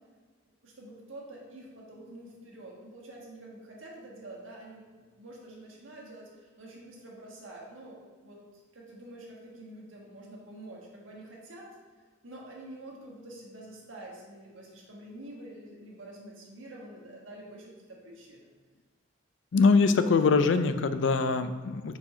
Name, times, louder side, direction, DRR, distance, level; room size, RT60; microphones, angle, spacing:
voice 1, 0.6-8.4 8.7-11.8 12.2-18.5, right 1 dB, 85° right, -3 dB, 1.4 m, -47 dB
voice 2, 19.5-21.9, left 4 dB, 70° left, 11 dB, 0.4 m, -23 dB
4.7 x 4.3 x 4.9 m, 1.5 s
head